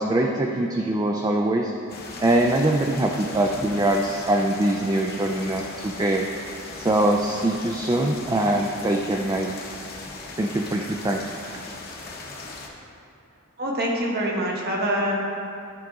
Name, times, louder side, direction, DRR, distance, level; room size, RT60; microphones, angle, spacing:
voice 1, 0.0-1.7 2.2-6.3 6.8-9.6 10.4-11.2, right 1 dB, 15° right, 1 dB, 0.3 m, -23 dB
sound 1, 1.9-12.7, left 3 dB, 45° left, 0.9 m, -39 dB
voice 2, 13.6-15.1, equal, 50° right, -2 dB, 1.3 m, -25 dB
12.0 x 5.1 x 3.6 m, 2.7 s
head